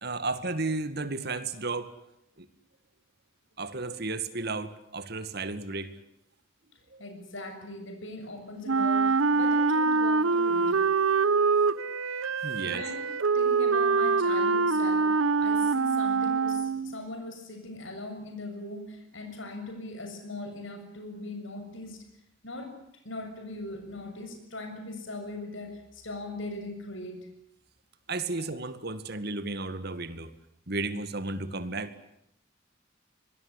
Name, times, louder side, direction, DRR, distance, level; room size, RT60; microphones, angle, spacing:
voice 1, 0.0-1.9 2.4-2.5 3.6-5.9 6.9-7.1 12.4-12.8 28.1-30.3 30.7-31.9, right 3 dB, 50° right, 12 dB, 2.0 m, -33 dB
voice 2, 7.0-10.8 12.6-13.1 13.3-22.0 22.4-22.7 23.0-27.3, left 2 dB, 70° left, 5 dB, 7.2 m, -40 dB
Wind instrument woodwind instrument, 8.7-17.0, right 4 dB, 85° right, 0.9 m, -24 dB
25.0 x 20.5 x 9.9 m, 0.79 s
head